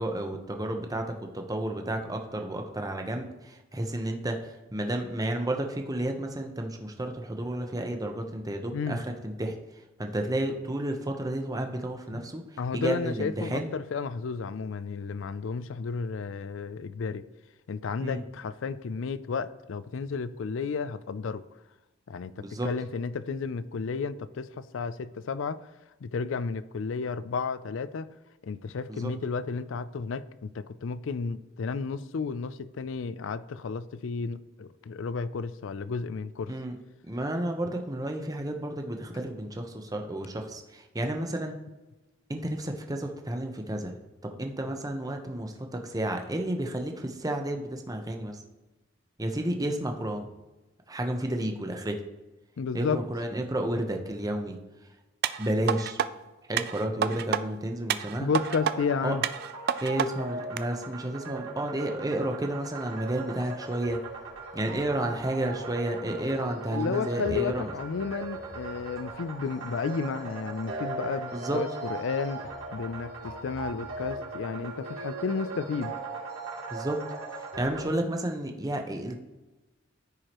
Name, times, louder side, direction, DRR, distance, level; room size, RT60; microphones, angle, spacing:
voice 1, 0.0-13.7 18.0-18.2 22.4-22.7 28.9-29.1 36.5-36.8 37.0-41.6 42.3-44.0 44.2-48.4 49.2-50.3 50.9-52.0 52.7-54.6 55.4-56.0 56.4-58.3 59.0-59.2 59.8-64.0 64.5-67.7 71.3-71.6 76.7-77.0 77.4-79.1, right 1 dB, 20° right, 0.8 m, -31 dB
voice 2, 8.7-9.0 12.1-12.2 12.6-17.3 17.7-21.4 22.1-25.6 26.0-28.1 28.4-36.5 52.6-53.0 58.2-59.2 66.7-76.0, left 5 dB, 70° left, 0.4 m, -32 dB
sound 1, 55.2-56.1 56.6-57.4 57.9-58.8 59.2-60.1 60.6-60.7, right 8 dB, 50° right, 0.3 m, -28 dB
sound 2, 58.3-77.8, right 3 dB, 85° right, 2.7 m, -39 dB
14.5 x 4.8 x 3.0 m
head